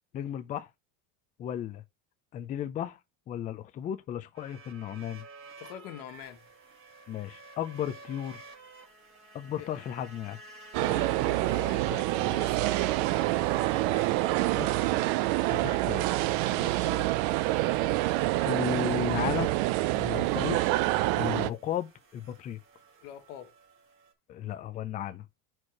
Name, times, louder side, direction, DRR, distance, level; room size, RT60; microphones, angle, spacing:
voice 1, 0.1-0.7 1.4-1.8 2.3-3.0 3.3-5.2 7.1-8.4 9.3-10.4 14.5-14.9 15.5-16.1 18.4-19.5 19.9-20.8 21.2-22.6 24.3-25.2, left 10 dB, 20° left, 0.4 m, -34 dB
sound 1, 4.3-24.1, right 4 dB, 30° right, 1.5 m, -51 dB
voice 2, 5.6-6.4 9.6-9.8 10.8-13.1 16.4-17.1 20.2-20.4 23.0-23.5, left 11 dB, 65° left, 1.6 m, -45 dB
sound 2, 10.7-21.5, right 17 dB, 55° right, 0.5 m, -27 dB
4.7 x 4.5 x 5.8 m
supercardioid pair, 145°, 41 cm